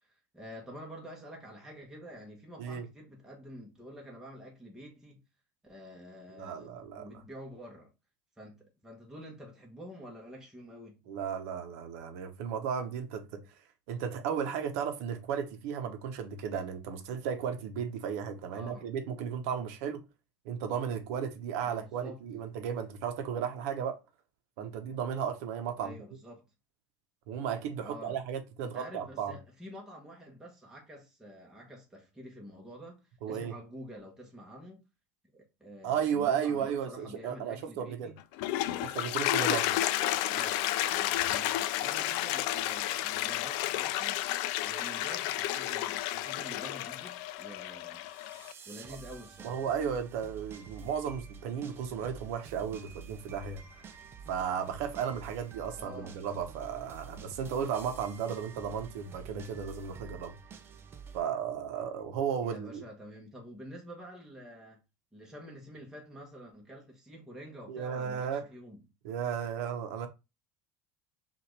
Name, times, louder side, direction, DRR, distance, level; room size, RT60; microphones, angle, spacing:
voice 1, 0.0-5.2 5.6-7.9 8.4-11.0 18.5-18.9 21.6-22.2 25.8-26.4 27.8-28.2 28.6-33.0 33.3-34.8 35.3-38.2 40.3-44.3 44.6-48.0 48.7-49.6 55.7-56.2 62.4-64.8 65.1-68.8, equal, 5° right, 1.2 m, -48 dB
voice 2, 6.3-7.2 11.1-13.4 13.9-20.0 20.4-24.0 24.6-25.9 27.3-29.4 33.2-33.5 35.8-38.1 38.8-39.7 49.4-53.6 54.3-60.4 61.1-62.8 67.7-68.4 69.0-70.1, right 7 dB, 75° right, 0.8 m, -34 dB
Toilet flush, 38.2-48.5, left 14 dB, 65° left, 0.3 m, -31 dB
sound 1, 47.9-61.2, right 6 dB, 30° right, 0.6 m, -49 dB
5.7 x 2.5 x 3.2 m
supercardioid pair, 130°, 8 cm